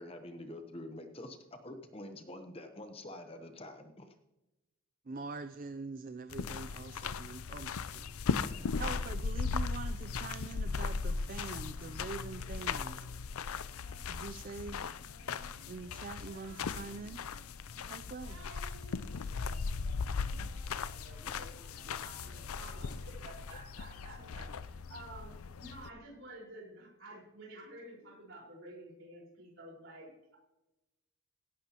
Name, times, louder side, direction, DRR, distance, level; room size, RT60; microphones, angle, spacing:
voice 1, 0.0-4.1, left 1 dB, 25° left, 7 dB, 0.8 m, -46 dB
voice 2, 5.1-8.2 8.4-13.1 14.1-14.8 15.7-17.2 17.9-18.4, right 4 dB, 40° right, 10 dB, 0.4 m, -44 dB
sound 1, 6.3-25.9, left 5 dB, 80° left, 0.5 m, -38 dB
Singing, 6.3-9.3 9.8-24.3, right 2 dB, 75° right, 1.8 m, -60 dB
voice 3, 20.7-30.4, right 1 dB, 60° right, -2 dB, 4.5 m, -51 dB
17.0 x 11.5 x 2.9 m, 0.98 s
head